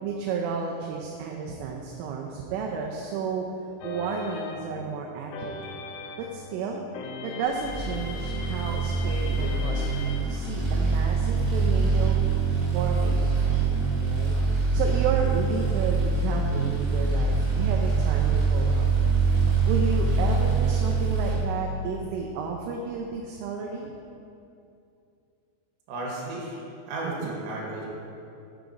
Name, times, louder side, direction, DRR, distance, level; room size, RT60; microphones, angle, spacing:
voice 1, 0.0-3.5 3.8-5.8 6.2-6.8 7.2-12.2 12.7-14.4 14.7-18.9 19.7-23.9 27.0-27.3, right 5 dB, 85° right, 0 dB, 3.0 m, -32 dB
sound 1, 3.8-6.4 6.9-10.2, left 4 dB, 85° left, 2.8 m, -39 dB
sound 2, 7.6-21.4, right 4 dB, 50° right, 2.1 m, -24 dB
voice 2, 25.9-26.6 26.9-27.9, right 2 dB, 70° right, -4 dB, 3.3 m, -33 dB
8.2 x 5.9 x 3.8 m, 2.6 s
omnidirectional pair, 5.8 m